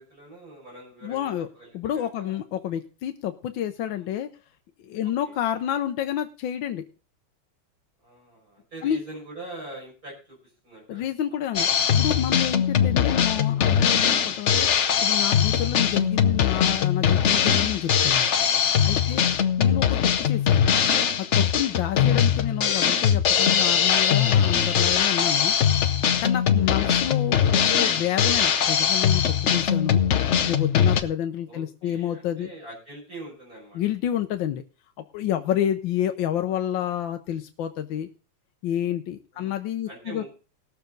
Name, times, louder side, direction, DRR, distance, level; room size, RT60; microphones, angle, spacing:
voice 1, 0.0-2.4 3.9-4.1 5.0-5.3 8.0-11.0 11.5-11.8 15.4-15.5 19.0-19.5 21.6-21.7 21.9-22.1 26.6-26.7 31.4-33.8 39.3-39.5 39.8-40.3, right 2 dB, 40° right, -3 dB, 6.3 m, -44 dB
voice 2, 1.0-1.5 1.7-4.3 4.8-6.8 8.8-9.0 10.9-11.7 11.9-14.7 15.0-18.3 18.8-19.2 19.6-20.8 21.2-25.5 26.2-30.0 30.4-32.5 33.7-34.6 35.0-38.1 38.6-40.2, left 10 dB, 65° left, 7 dB, 1.4 m, -29 dB
Drum kit, 11.5-31.0, left 8 dB, 85° left, 0.6 m, -21 dB
19.5 x 7.2 x 3.8 m, 0.35 s
omnidirectional pair, 2.4 m